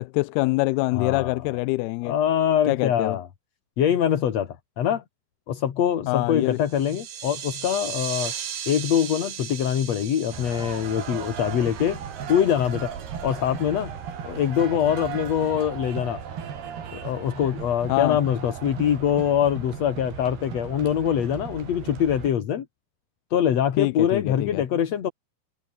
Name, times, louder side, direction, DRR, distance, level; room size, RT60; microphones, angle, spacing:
voice 1, 0.0-2.1 2.7-3.2 6.1-6.6 17.9-18.2 23.8-24.6, left 23 dB, 85° left, 2.5 m, -25 dB
voice 2, 0.9-1.4 2.1-3.3 3.8-5.0 5.5-8.3 8.7-12.0 12.3-12.9 13.2-13.9 14.2-16.2 16.9-22.7 23.3-25.1, left 9 dB, 50° left, 2.6 m, -24 dB
sound 1, 6.6-12.6, right 9 dB, 60° right, 3.7 m, -37 dB
sound 2, 10.3-22.3, right 7 dB, 80° right, 5.4 m, -36 dB
omnidirectional pair, 4.5 m